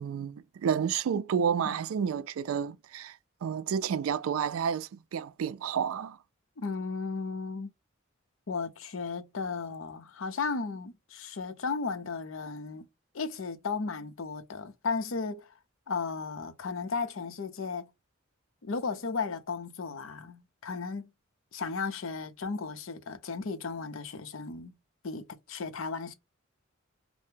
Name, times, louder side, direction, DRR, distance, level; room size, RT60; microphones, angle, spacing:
voice 1, 0.0-6.2, right 7 dB, 85° right, 0.3 m, -30 dB
voice 2, 6.6-7.7 8.5-12.9 13.1-15.5 15.9-17.9 18.6-21.1 21.5-24.7 25.0-26.1, left 4 dB, 75° left, 0.6 m, -35 dB
2.8 x 2.0 x 3.4 m
head